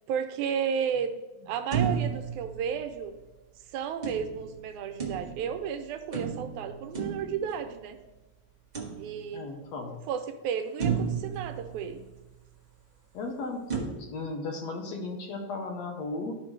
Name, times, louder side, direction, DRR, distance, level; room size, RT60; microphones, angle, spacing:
voice 1, 0.1-1.1 1.5-3.1 3.7-8.0 9.0-9.4 10.1-12.0, right 7 dB, 85° right, 7 dB, 2.1 m, -33 dB
sound 1, 1.7-3.3 4.0-5.6 6.1-8.0 8.7-9.6 10.1-10.2 10.8-12.5 13.7-13.8, right 7 dB, 55° right, 0.4 m, -33 dB
voice 2, 9.3-10.0 13.1-16.3, left 3 dB, 70° left, 3 dB, 2.1 m, -36 dB
13.0 x 5.2 x 3.2 m, 1.1 s
omnidirectional pair, 3.4 m